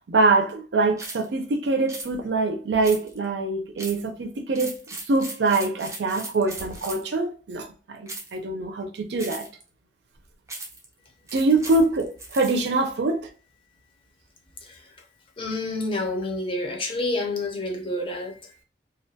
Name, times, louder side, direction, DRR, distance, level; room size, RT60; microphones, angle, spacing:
voice 1, 0.1-4.7 5.1-9.5 11.3-13.3, right 3 dB, 75° right, 0.5 m, -24 dB
sound 1, 1.0-1.3 1.9-2.1 2.8-3.3 3.8-4.1 4.5-7.1 8.1-8.4 9.2-9.6 10.5-10.9 11.3-12.7, right 2 dB, 15° right, 0.5 m, -38 dB
voice 2, 14.6-14.9 15.4-18.6, left 2 dB, 30° left, 0.5 m, -29 dB
2.3 x 2.2 x 2.7 m
head